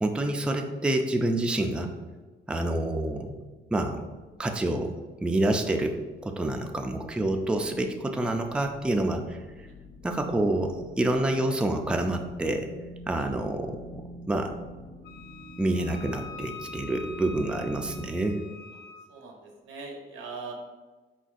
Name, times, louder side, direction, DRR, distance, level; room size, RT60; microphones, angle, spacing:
voice 1, 0.0-1.9 2.5-3.3 3.7-4.0 4.4-4.9 5.2-9.4 10.0-12.7 13.1-14.0 14.3-14.5 15.6-18.4, right 1 dB, 5° right, 4 dB, 0.3 m, -27 dB
sound 1, 3.6-18.1, equal, 25° left, 0.8 m, -47 dB
Wind instrument woodwind instrument, 15.0-19.1, left 4 dB, 65° left, 0.5 m, -44 dB
voice 2, 19.1-20.5, right 4 dB, 90° right, 1 dB, 0.8 m, -41 dB
4.2 x 4.0 x 2.5 m, 1.3 s
cardioid pair, 90°, 20 cm